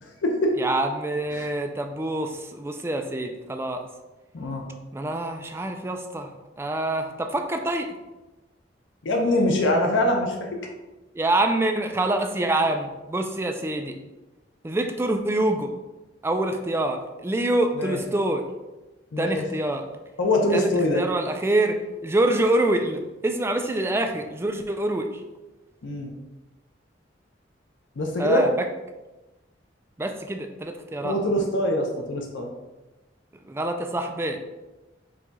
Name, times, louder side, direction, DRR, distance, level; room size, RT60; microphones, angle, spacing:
voice 1, 0.0-0.5 1.3-1.4 4.3-4.7 9.0-10.5 17.8-18.0 19.1-19.4 20.2-21.0 25.8-26.1 28.0-28.4 31.0-32.5, left 1 dB, 80° left, 2 dB, 0.6 m, -23 dB
voice 2, 0.6-3.8 4.9-6.3 6.6-7.9 11.1-14.0 14.6-15.7 16.2-18.4 19.2-19.9 20.5-25.2 28.2-28.7 30.0-31.2 33.4-34.4, right 1 dB, 15° right, 5 dB, 0.3 m, -26 dB
4.7 x 2.4 x 4.0 m, 1.1 s
head